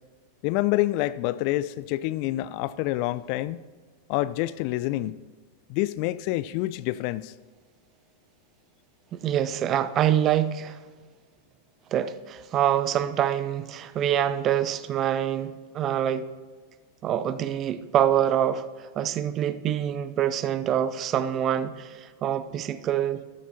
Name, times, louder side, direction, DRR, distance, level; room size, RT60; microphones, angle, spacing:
voice 1, 0.4-3.6 4.1-5.2 5.7-7.3, left 16 dB, 45° left, 0.3 m, -27 dB
voice 2, 9.1-10.8 11.9-16.3 17.0-23.2, right 10 dB, 30° right, 0.6 m, -25 dB
13.5 x 13.0 x 2.8 m
figure-of-eight pair, 90°, 0 cm